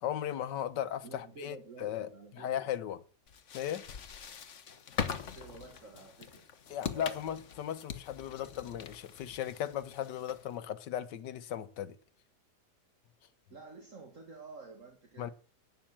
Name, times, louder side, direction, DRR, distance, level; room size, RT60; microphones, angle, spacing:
voice 1, 0.0-2.1 2.3-3.0 3.5-3.8 6.7-12.0 15.2-15.3, left 10 dB, 85° left, 1.6 m, -37 dB
voice 2, 1.0-2.5 5.0-7.2 13.5-15.3, right 4 dB, 45° right, 2.4 m, -50 dB
sound 1, 3.3-10.6, left 7 dB, 50° left, 1.3 m, -42 dB
12.0 x 8.8 x 8.7 m
omnidirectional pair, 1.8 m